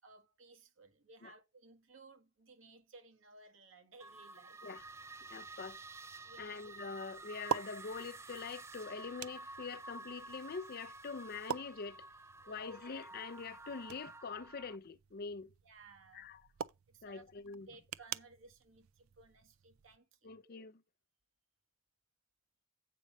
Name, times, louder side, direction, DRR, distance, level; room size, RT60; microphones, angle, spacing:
voice 1, 0.0-4.6 6.2-6.6 12.4-12.7 15.6-16.3 16.9-17.2 17.7-20.5, right 3 dB, 65° right, 1.7 m, -59 dB
sound 1, 4.0-14.8, right 3 dB, 15° right, 0.4 m, -51 dB
sound 2, 4.8-20.0, right 8 dB, 90° right, 0.4 m, -47 dB
voice 2, 5.3-5.8 6.4-12.1 12.5-15.5 16.1-16.5 17.0-17.7 20.2-20.8, left 5 dB, 45° left, 0.5 m, -44 dB
8.4 x 5.3 x 5.3 m
head